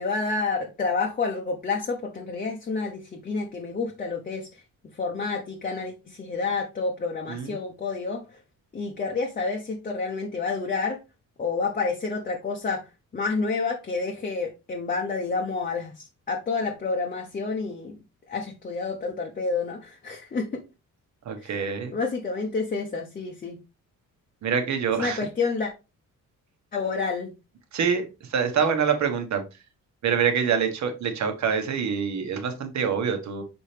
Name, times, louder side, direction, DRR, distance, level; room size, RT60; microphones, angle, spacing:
voice 1, 0.0-4.6 4.9-8.4 8.7-11.0 11.4-12.9 13.1-18.0 18.3-20.6 21.4-21.5 21.9-23.6 25.0-25.7 26.7-27.3, left 4 dB, 25° left, 1 dB, 0.8 m, -29 dB
voice 2, 7.3-7.6 21.2-22.0 24.4-25.2 27.7-29.4 30.0-33.4, right 6 dB, 55° right, 6 dB, 1.2 m, -26 dB
6.5 x 4.4 x 3.3 m, 0.27 s
wide cardioid pair, 175°, 33 cm